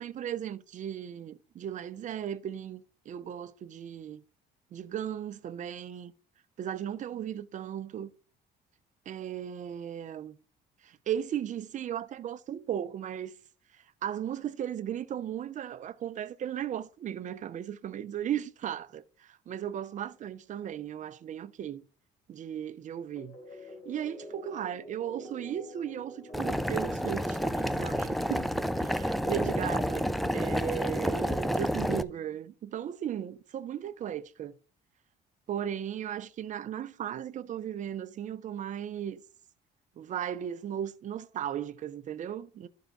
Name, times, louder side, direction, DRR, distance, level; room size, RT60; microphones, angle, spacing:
voice 1, 0.0-4.2 4.7-6.1 6.6-8.1 9.1-10.4 10.8-13.3 13.7-21.8 22.3-28.5 28.8-34.6 35.5-39.2 40.0-42.7, right 10 dB, 45° right, 0.6 m, -36 dB
sound 1, 23.2-28.3, left 1 dB, 75° left, 4.2 m, -48 dB
Boiling, 26.3-32.0, equal, ahead, 0.4 m, -30 dB
12.5 x 4.6 x 3.9 m
cardioid pair, 110°, 17 cm